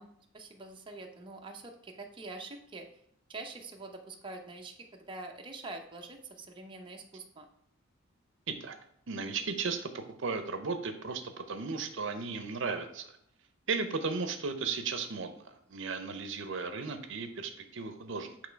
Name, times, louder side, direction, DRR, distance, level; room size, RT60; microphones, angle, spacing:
voice 1, 0.0-2.9 3.3-7.5, right 2 dB, 25° right, 2 dB, 0.7 m, -45 dB
voice 2, 9.1-11.2 11.5-13.1 13.7-15.4 15.7-18.4, right 4 dB, 65° right, 7 dB, 0.7 m, -35 dB
8.3 x 3.1 x 4.5 m, 0.71 s
head